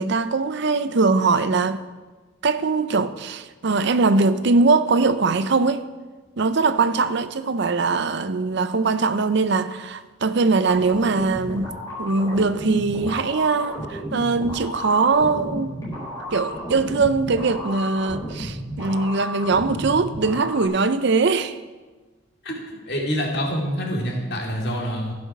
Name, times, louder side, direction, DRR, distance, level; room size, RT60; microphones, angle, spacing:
voice 1, 0.0-1.8 2.4-5.8 6.4-11.7 12.0-15.8 16.3-21.6, right 4 dB, 55° right, 0.5 m, -21 dB
sound 1, 10.7-20.7, equal, 15° left, 3.8 m, -33 dB
voice 2, 22.4-25.1, equal, 55° left, 2.5 m, -26 dB
15.0 x 6.2 x 6.0 m
head